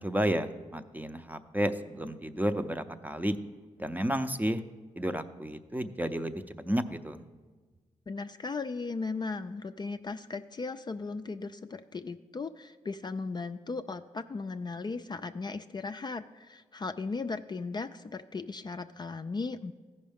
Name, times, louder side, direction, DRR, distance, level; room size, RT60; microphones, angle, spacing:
voice 1, 0.0-3.4 3.8-4.6 5.0-7.2, equal, 10° right, 9 dB, 0.6 m, -31 dB
voice 2, 8.1-19.7, left 4 dB, 30° left, 8 dB, 0.4 m, -37 dB
14.5 x 5.4 x 3.5 m, 1.4 s
supercardioid pair, 45°, 14 cm